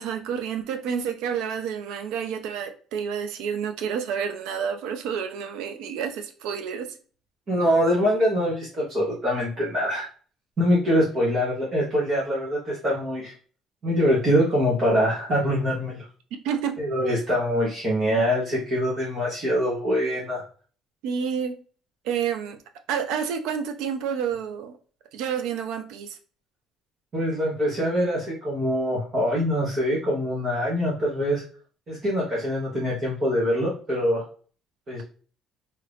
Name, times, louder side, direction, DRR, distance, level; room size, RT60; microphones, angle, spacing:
voice 1, 0.0-6.9 16.3-16.8 21.0-21.6 22.0-22.6 22.9-24.8 25.1-26.2, right 7 dB, 75° right, 7 dB, 0.5 m, -29 dB
voice 2, 7.5-10.0 10.6-13.3 13.8-16.1 16.8-20.4 27.1-31.4 31.9-34.2 34.9-35.0, equal, 30° right, -6 dB, 1.0 m, -24 dB
2.8 x 2.5 x 3.3 m, 0.41 s
cardioid pair, 175°, 0 cm